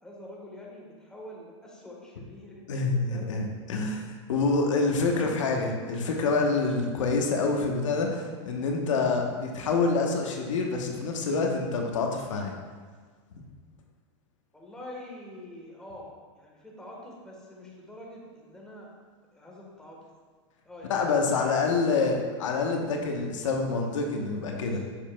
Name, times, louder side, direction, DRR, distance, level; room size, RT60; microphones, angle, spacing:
voice 1, 0.0-3.4 14.5-18.9 19.3-20.0 20.6-22.1 24.6-24.8, left 1 dB, 5° left, -3 dB, 1.3 m, -45 dB
voice 2, 2.7-4.0 4.3-12.5 20.9-24.8, left 4 dB, 90° left, 2 dB, 1.1 m, -27 dB
7.4 x 6.6 x 2.3 m, 1.5 s
supercardioid pair, 135°, 16 cm